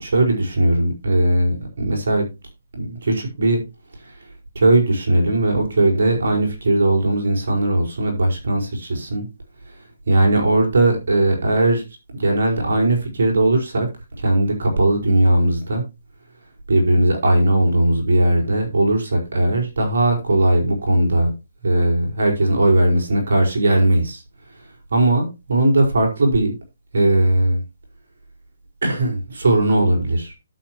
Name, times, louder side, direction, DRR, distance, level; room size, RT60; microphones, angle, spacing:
voice 1, 0.0-2.3 2.7-3.6 4.0-4.1 4.5-9.2 10.1-11.8 12.1-15.8 16.7-21.3 21.6-24.2 24.9-26.5 26.9-27.6 28.8-30.3, right 1 dB, 70° right, 4.9 m, -18 dB
11.5 x 8.3 x 3.0 m
hypercardioid pair, 155°, 0 cm